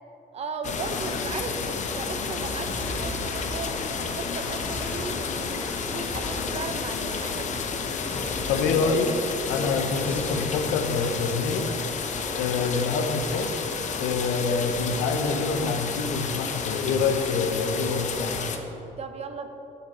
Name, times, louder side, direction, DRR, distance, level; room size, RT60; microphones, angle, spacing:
voice 1, 0.3-7.8 19.0-19.5, right 4 dB, 40° right, 7 dB, 0.7 m, -37 dB
sound 1, 0.6-18.6, left 5 dB, 45° left, 0.7 m, -31 dB
sound 2, 2.7-3.6 4.6-5.5 6.1-7.0 8.1-9.0 9.9-10.9, left 1 dB, 10° left, 0.8 m, -40 dB
voice 2, 8.5-9.1 9.5-11.7 12.4-13.6 14.0-18.5, left 4 dB, 90° left, 6 dB, 0.7 m, -26 dB
6.9 x 6.8 x 4.1 m, 3.0 s
cardioid pair, 110°, 17 cm